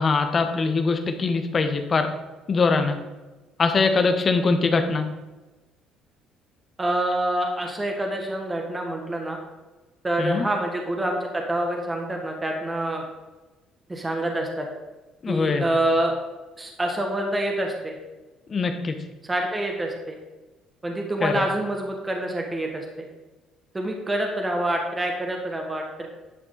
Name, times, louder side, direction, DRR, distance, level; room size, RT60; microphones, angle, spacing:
voice 1, 0.0-2.1 2.5-3.0 3.6-5.0 10.2-10.5 15.2-15.7 18.5-19.0 21.2-21.5, left 4 dB, 40° left, 7 dB, 1.2 m, -22 dB
voice 2, 6.8-9.4 10.0-13.0 13.9-14.7 15.3-16.1 16.6-18.0 19.2-20.2 20.8-23.0 23.7-26.1, right 1 dB, 20° right, 1 dB, 1.6 m, -26 dB
11.0 x 6.0 x 4.0 m, 1.2 s
supercardioid pair, 75°, 0 cm